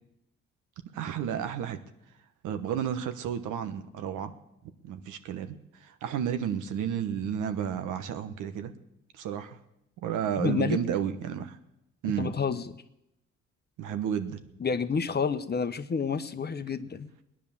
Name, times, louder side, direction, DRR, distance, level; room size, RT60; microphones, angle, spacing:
voice 1, 0.9-1.8 2.4-4.3 4.8-8.7 9.1-9.6 10.0-11.6 12.0-12.3 13.8-14.4, right 9 dB, 90° right, 9 dB, 1.2 m, -32 dB
voice 2, 10.4-10.8 12.2-12.6 14.6-17.1, left 5 dB, 35° left, 11 dB, 0.9 m, -29 dB
18.5 x 10.0 x 7.1 m, 0.86 s
cardioid pair, 90°, 30 cm